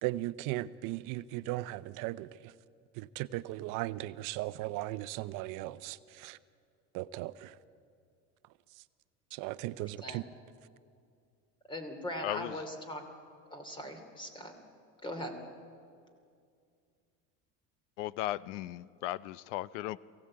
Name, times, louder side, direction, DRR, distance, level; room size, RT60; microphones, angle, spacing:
voice 1, 0.0-2.5 3.0-6.4 6.9-7.5 9.3-10.2, right 17 dB, 60° right, 0.8 m, -37 dB
voice 2, 11.7-13.0 13.5-14.5 15.0-15.3, left 1 dB, 15° left, 2.7 m, -40 dB
voice 3, 12.2-12.6 18.0-20.0, left 15 dB, 85° left, 0.6 m, -36 dB
22.5 x 16.5 x 8.6 m
supercardioid pair, 130°, 35 cm